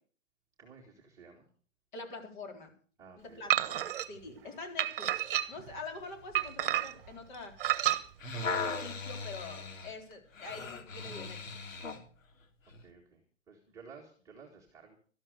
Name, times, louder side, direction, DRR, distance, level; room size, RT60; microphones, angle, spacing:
voice 1, 0.6-1.5 3.0-3.4 12.8-15.0, right 5 dB, 10° right, -3 dB, 1.8 m, -54 dB
voice 2, 1.9-2.7 3.1-7.5 8.3-11.4 11.7-11.8, left 3 dB, 40° left, 4 dB, 4.0 m, -45 dB
sound 1, 3.5-4.1 4.8-5.7 6.3-7.1 7.6-8.0, right 13 dB, 45° right, 1.2 m, -30 dB
sound 2, 8.0-12.1 12.7-12.8, left 4 dB, 85° left, 3.5 m, -38 dB
13.0 x 12.0 x 6.6 m, 0.43 s
hypercardioid pair, 175°, 38 cm